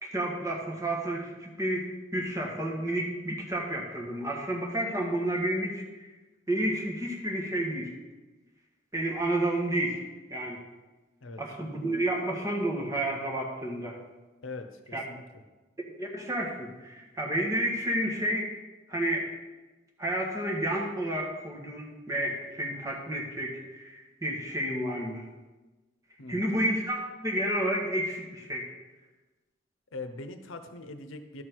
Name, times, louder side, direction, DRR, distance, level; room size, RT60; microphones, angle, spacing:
voice 1, 0.0-6.1 6.5-7.9 8.9-10.0 10.3-10.6 11.4-14.0 14.9-15.0 16.0-18.5 18.9-19.3 20.0-25.2 26.3-28.7, right 1 dB, 15° right, -1 dB, 1.6 m, -30 dB
voice 2, 14.4-15.4 26.2-26.6 29.9-31.4, left 3 dB, 85° left, 8 dB, 0.8 m, -42 dB
12.0 x 6.1 x 4.6 m, 1.2 s
head